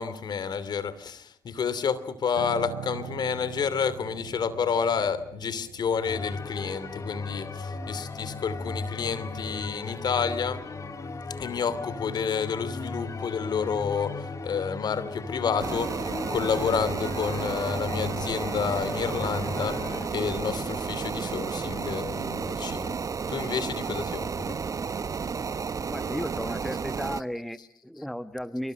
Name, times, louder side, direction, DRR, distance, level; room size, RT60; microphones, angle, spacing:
voice 1, 0.0-10.6 11.4-19.8 20.1-23.0 23.3-24.6, left 6 dB, 55° left, 16 dB, 2.8 m, -30 dB
Piano, 2.4-11.7 12.0-12.3, right 11 dB, 75° right, 3.4 m, -44 dB
sound 1, 6.0-20.1, left 3 dB, 40° left, 3.5 m, -36 dB
sound 2, 15.6-27.2, right 5 dB, 40° right, 1.2 m, -32 dB
voice 2, 25.8-28.7, equal, ahead, 13 dB, 1.3 m, -34 dB
26.5 x 25.0 x 6.6 m, 0.63 s
supercardioid pair, 60°, 9 cm